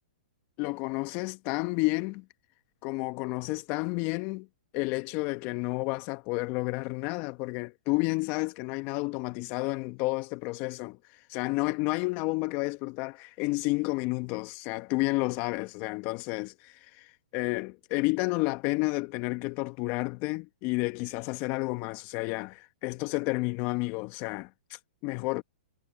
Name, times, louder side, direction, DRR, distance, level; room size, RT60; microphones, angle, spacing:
voice 1, 0.6-2.2 2.8-4.5 4.7-25.4, left 25 dB, 40° left, 1.0 m, -31 dB
hypercardioid pair, 125°, 5 cm